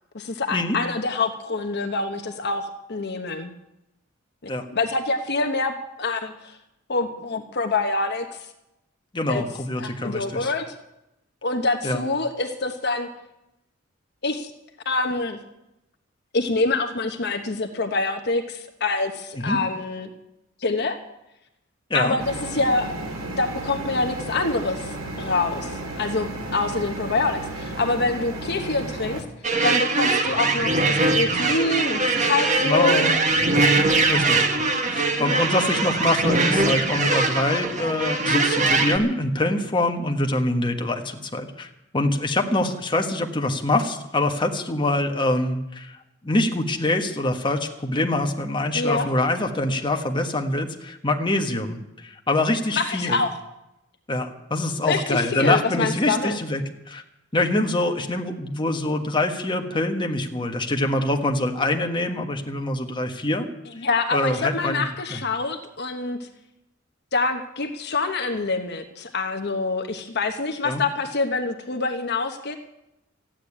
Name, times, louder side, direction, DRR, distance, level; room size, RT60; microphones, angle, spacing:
voice 1, 0.1-3.5 4.7-6.6 6.9-8.5 9.3-9.4 9.8-10.7 11.4-13.1 14.2-14.5 14.8-15.4 16.3-20.1 20.6-21.0 21.9-22.9 23.4-29.2 29.6-33.2 35.2-35.5 48.7-49.1 52.7-53.4 54.8-56.4 63.8-66.3 67.1-72.6, left 3 dB, 55° left, 6 dB, 1.1 m, -26 dB
voice 2, 9.1-10.5 11.8-12.0 19.5-19.6 21.9-22.2 32.6-33.1 34.1-34.5 34.9-53.2 54.1-56.6 56.9-57.0 57.3-63.5 64.1-64.8 70.6-70.8, left 2 dB, 25° left, 3 dB, 1.4 m, -24 dB
sound 1, 22.2-29.2, right 2 dB, 75° right, 2.7 m, -33 dB
sound 2, 29.4-39.0, right 3 dB, 35° right, 1.6 m, -21 dB
14.0 x 9.0 x 9.9 m, 0.89 s
head